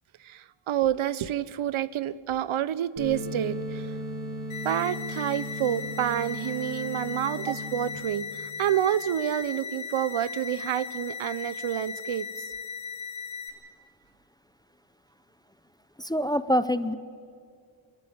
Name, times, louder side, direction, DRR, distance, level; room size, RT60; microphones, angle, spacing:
voice 1, 0.2-3.9 4.6-12.3, right 11 dB, 80° right, 18 dB, 0.8 m, -28 dB
sound 1, 3.0-8.0, equal, 65° right, 6.5 m, -36 dB
sound 2, 4.5-13.5, left 6 dB, 75° left, 3.1 m, -38 dB
voice 2, 16.0-17.0, equal, 10° left, 14 dB, 0.5 m, -25 dB
28.0 x 12.5 x 8.7 m, 2.3 s
wide cardioid pair, 135°, 48 cm